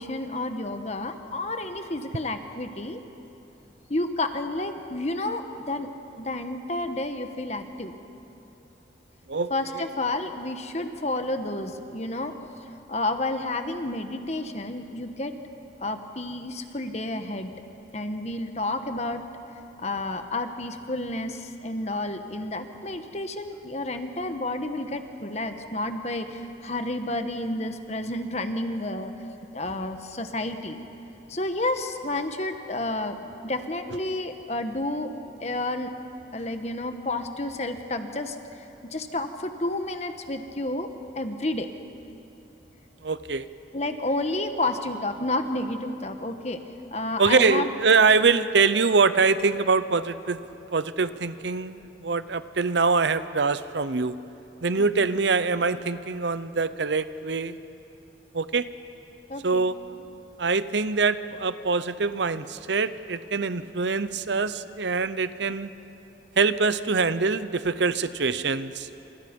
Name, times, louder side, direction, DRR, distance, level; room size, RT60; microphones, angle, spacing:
voice 1, 0.0-3.0 3.9-5.9 6.2-7.9 9.5-12.3 12.9-15.3 15.8-17.5 17.9-19.2 19.8-29.1 29.5-30.8 31.3-35.1 35.4-35.9 36.3-40.9 41.1-41.7 43.7-46.6 46.9-47.7 54.8-55.1 59.3-59.7, left 2 dB, 35° left, 7 dB, 1.3 m, -30 dB
voice 2, 9.3-9.8 43.0-43.5 47.2-50.4 50.7-54.1 54.6-57.6 58.3-58.7 59.4-59.7 60.4-65.7 66.4-68.9, right 4 dB, 70° right, 13 dB, 0.8 m, -24 dB
28.5 x 27.5 x 5.4 m, 2.9 s
head